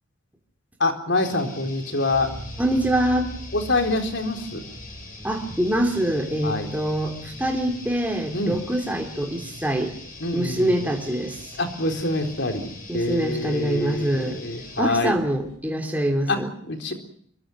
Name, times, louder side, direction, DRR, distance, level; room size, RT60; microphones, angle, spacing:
voice 1, 0.8-2.4 3.5-4.6 6.4-6.7 8.3-8.6 10.2-10.8 11.6-15.1 16.3-16.4 16.7-16.9, left 2 dB, 60° left, 6 dB, 4.1 m, -25 dB
sound 1, 1.2-14.9, left 3 dB, 40° left, 7.3 m, -43 dB
sound 2, 2.1-15.6, equal, 80° left, 8.0 m, -44 dB
voice 2, 2.6-3.3 5.2-9.9 10.3-11.5 12.9-14.4 14.8-16.5, right 1 dB, 10° right, 2 dB, 3.1 m, -24 dB
25.0 x 23.5 x 6.3 m, 0.64 s
head